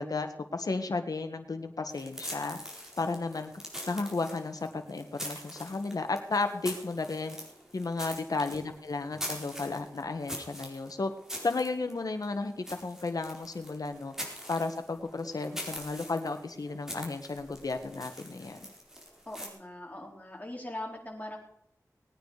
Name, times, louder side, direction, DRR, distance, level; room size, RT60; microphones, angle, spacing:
voice 1, 0.0-2.6 3.0-3.5 3.9-7.4 7.7-11.1 11.4-14.1 14.5-18.7, left 3 dB, 75° left, 7 dB, 1.6 m, -33 dB
sound 1, 1.9-19.5, equal, 5° right, 4.3 m, -43 dB
voice 2, 19.3-21.4, left 1 dB, 25° left, 0 dB, 4.2 m, -41 dB
20.0 x 9.4 x 5.1 m, 0.70 s
wide cardioid pair, 70°, 6 cm